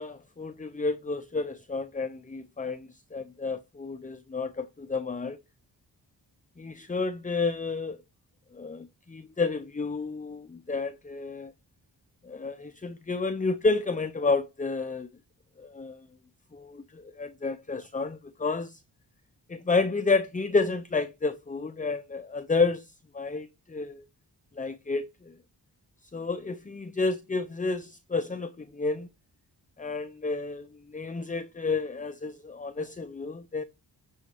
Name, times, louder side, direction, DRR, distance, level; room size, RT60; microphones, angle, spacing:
voice 1, 0.0-5.4 6.6-8.0 8.5-11.5 12.2-15.1 15.6-16.0 16.5-18.8 19.5-24.0 24.6-25.3 26.1-29.1 29.8-33.6, left 3 dB, 20° left, 0.6 m, -30 dB
10.0 x 4.1 x 4.5 m
cardioid pair, 75°, 42 cm